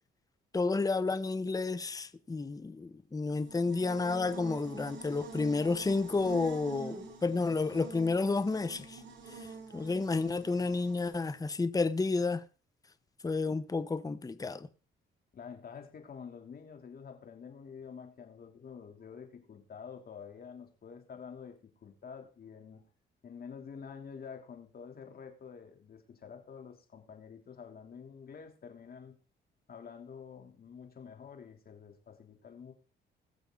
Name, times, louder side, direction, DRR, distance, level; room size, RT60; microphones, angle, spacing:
voice 1, 0.5-9.0 9.3-12.4 13.2-14.7, left 3 dB, 20° left, 0.8 m, -31 dB
Buzz, 3.2-11.4, right 4 dB, 70° right, 3.9 m, -46 dB
voice 2, 15.3-22.8 23.2-29.2 29.7-32.7, left 6 dB, 50° left, 2.9 m, -48 dB
21.0 x 7.0 x 3.8 m
cardioid pair, 90°, 20 cm